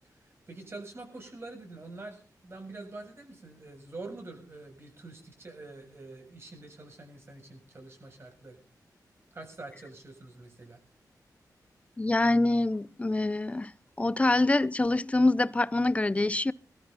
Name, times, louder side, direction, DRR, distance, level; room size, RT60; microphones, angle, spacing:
voice 1, 0.5-8.6 9.3-10.8, right 2 dB, 35° right, 7.4 m, -45 dB
voice 2, 12.0-13.7 14.0-16.5, left 2 dB, 20° left, 0.7 m, -25 dB
22.0 x 13.5 x 4.1 m
wide cardioid pair, 100°, 7 cm